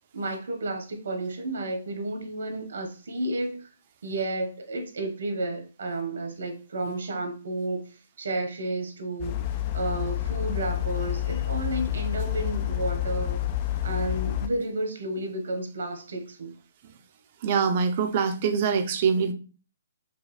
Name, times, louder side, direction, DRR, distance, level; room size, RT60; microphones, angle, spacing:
voice 1, 0.1-3.7 4.0-7.9 8.2-9.4 9.7-13.4 13.8-16.5, right 2 dB, 75° right, 4 dB, 1.1 m, -31 dB
sound 1, 9.2-14.5, left 13 dB, 25° left, 0.3 m, -29 dB
voice 2, 17.4-19.3, right 6 dB, 35° right, 8 dB, 0.5 m, -24 dB
5.2 x 2.3 x 3.2 m, 0.36 s
hypercardioid pair, 165°, 0 cm